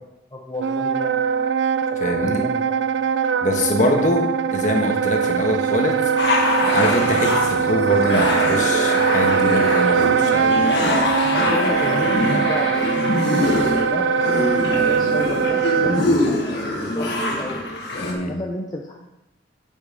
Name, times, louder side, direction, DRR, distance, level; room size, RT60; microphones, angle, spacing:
voice 1, 0.3-1.5 2.0-3.1 11.2-17.6 17.8-19.1, left 1 dB, 20° left, -1 dB, 0.7 m, -32 dB
Wind instrument woodwind instrument, 0.6-16.1, right 7 dB, 80° right, 0.4 m, -21 dB
voice 2, 2.0-2.5 3.4-6.0 6.7-10.5 15.8-16.1 18.0-18.3, left 1 dB, 40° left, 2 dB, 1.3 m, -23 dB
sound 1, 6.2-18.1, left 1 dB, 65° left, 1.6 m, -23 dB
8.7 x 6.3 x 5.3 m, 0.94 s
head